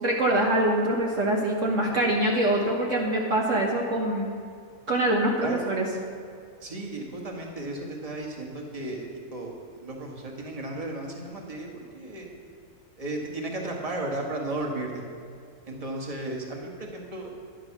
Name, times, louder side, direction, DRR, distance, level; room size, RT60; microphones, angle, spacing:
voice 1, 0.0-4.3 4.9-5.8, right 1 dB, 55° right, -2 dB, 1.6 m, -24 dB
voice 2, 6.6-9.1 9.3-12.3 13.0-15.0 15.7-17.3, right 2 dB, 25° right, 0 dB, 1.8 m, -34 dB
11.5 x 10.5 x 6.0 m, 2.4 s
omnidirectional pair, 1.6 m